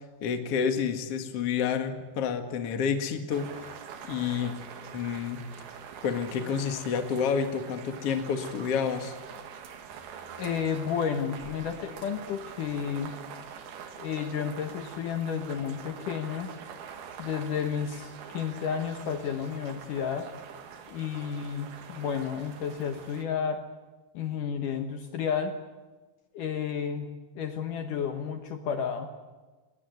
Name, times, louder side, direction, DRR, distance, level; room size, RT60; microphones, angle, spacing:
voice 1, 0.2-3.7 4.0-4.5 4.9-5.4 6.0-9.1, left 6 dB, 50° left, 6 dB, 2.2 m, -29 dB
sound 1, 3.3-23.2, right 7 dB, 80° right, 3.6 m, -45 dB
voice 2, 10.4-13.1 14.0-16.5 17.2-20.3 20.9-23.6 24.1-25.5 26.3-27.1 27.4-29.1, left 7 dB, 65° left, 6 dB, 2.6 m, -31 dB
22.0 x 20.0 x 9.4 m, 1.3 s
omnidirectional pair, 4.5 m